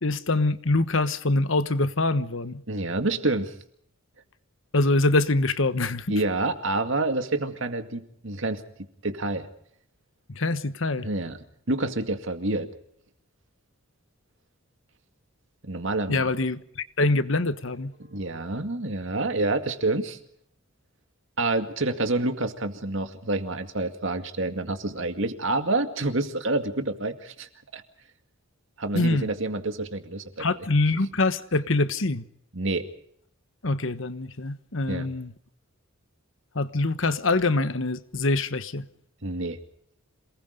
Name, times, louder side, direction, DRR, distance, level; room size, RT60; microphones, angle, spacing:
voice 1, 0.0-2.6 4.7-6.1 10.3-11.1 16.1-17.9 28.9-29.3 30.4-32.3 33.6-35.3 36.5-38.9, left 2 dB, 60° left, 1.2 m, -24 dB
voice 2, 2.7-3.5 6.1-8.6 9.0-9.5 11.0-11.4 11.7-12.7 15.6-16.3 18.1-20.2 21.4-27.8 28.8-30.5 32.5-32.9 34.9-35.1 39.2-39.6, right 2 dB, 60° right, 2.2 m, -28 dB
27.5 x 19.5 x 5.2 m
head